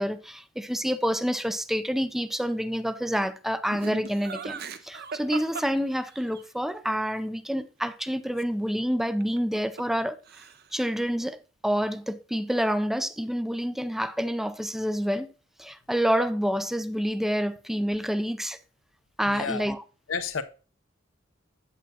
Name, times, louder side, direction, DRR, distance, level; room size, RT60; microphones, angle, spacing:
voice 1, 0.0-10.2 10.7-15.3 15.6-18.6 19.2-19.8, equal, ahead, 0.4 m, -28 dB
Laughter, 3.7-6.4 9.2-10.0 10.3-10.8, right 5 dB, 55° right, 0.6 m, -38 dB
voice 2, 19.3-19.7 20.1-20.4, left 5 dB, 85° left, 0.7 m, -30 dB
8.5 x 8.1 x 2.7 m
head